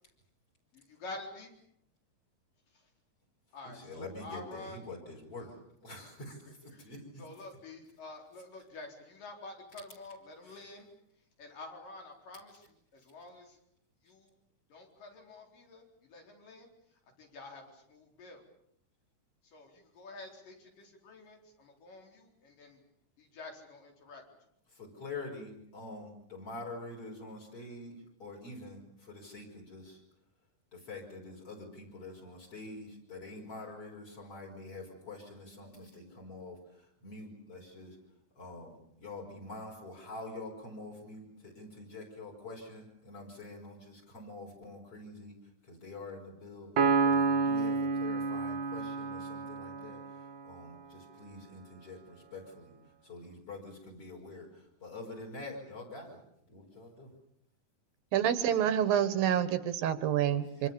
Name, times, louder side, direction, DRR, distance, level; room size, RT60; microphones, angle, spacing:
voice 1, 0.7-1.5 3.5-4.9 5.4-5.5 6.5-10.9 11.4-13.6 14.0-14.3 14.7-16.7 17.2-18.4 19.4-22.8 23.2-24.2 60.5-60.7, left 2 dB, 70° left, 2 dB, 5.9 m, -49 dB
voice 2, 3.8-5.5 5.8-6.4 6.6-7.2 24.8-30.0 30.7-36.6 37.0-38.0 38.4-45.4 45.7-46.7 47.0-50.0 50.4-52.8 53.0-54.5 54.8-56.2 56.5-57.1, left 2 dB, 40° left, 2 dB, 6.4 m, -46 dB
Piano, 46.8-50.4, right 4 dB, 65° right, 1.1 m, -29 dB
voice 3, 58.1-60.7, right 10 dB, 90° right, 11 dB, 3.4 m, -28 dB
26.5 x 26.0 x 7.1 m, 0.73 s
omnidirectional pair, 4.0 m